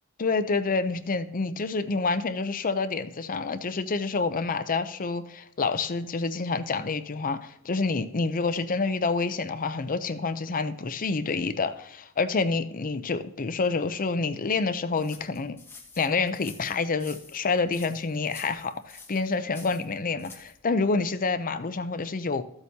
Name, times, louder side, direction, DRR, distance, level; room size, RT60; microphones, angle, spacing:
voice 1, 0.2-15.6 16.0-22.4, left 4 dB, 40° left, 0.6 m, -28 dB
sound 1, 15.0-20.6, left 4 dB, 10° left, 1.3 m, -49 dB
14.0 x 8.0 x 2.8 m
head